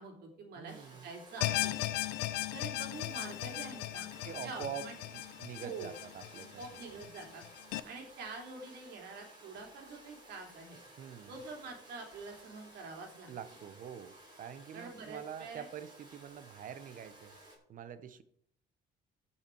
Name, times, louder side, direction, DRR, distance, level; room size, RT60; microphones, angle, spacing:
voice 1, 0.0-1.8 2.5-4.1 4.4-4.9 5.6-5.9 6.6-7.4 7.8-10.8 11.3-13.3 14.7-15.7, right 4 dB, 70° right, 2 dB, 3.2 m, -46 dB
voice 2, 0.6-1.1 4.2-4.9 5.1-6.8 11.0-11.3 13.3-17.4 17.7-18.2, right 8 dB, 55° right, 13 dB, 0.9 m, -45 dB
Domestic sounds home sounds, 0.7-17.6, right 1 dB, 25° right, 4.1 m, -56 dB
sound 1, 1.4-7.8, left 16 dB, 90° left, 0.6 m, -37 dB
15.5 x 5.8 x 4.6 m, 0.67 s
cardioid pair, 110°, 17 cm